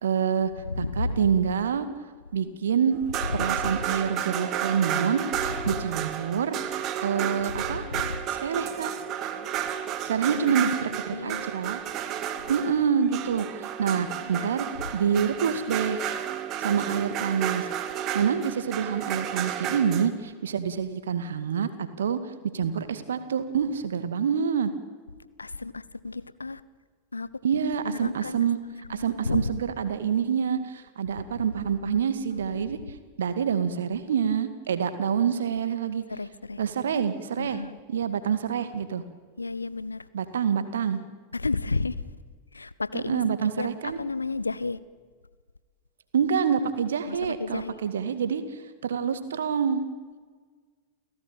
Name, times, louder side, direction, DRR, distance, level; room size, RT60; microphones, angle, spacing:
voice 1, 0.0-0.5 0.8-1.9 2.3-3.0 3.3-5.3 5.7-6.6 7.0-7.9 8.3-8.9 10.0-11.8 12.5-13.5 13.8-14.7 14.9-16.0 16.6-17.7 18.1-22.2 22.5-24.7 27.4-28.6 28.9-32.8 33.2-36.0 36.6-37.6 37.9-39.0 40.1-41.0 42.9-44.0 46.1-48.4 48.8-49.8, right 7 dB, 65° right, 2.2 m, -26 dB
voice 2, 0.7-1.3 3.4-3.5 5.7-5.8 7.6-8.2 10.3-10.6 11.1-11.5 14.2-14.5 25.4-26.6 27.1-27.3 27.8-28.4 28.9-29.4 32.4-32.6 36.1-36.6 37.4-37.8 39.4-40.0 41.3-41.9 42.5-43.2 43.6-43.7 44.0-44.8 47.1-47.7, left 3 dB, 80° left, 1.0 m, -32 dB
sound 1, 2.9-20.1, right 10 dB, 35° right, 2.1 m, -32 dB
29.5 x 16.5 x 9.1 m
figure-of-eight pair, 90°, 0 cm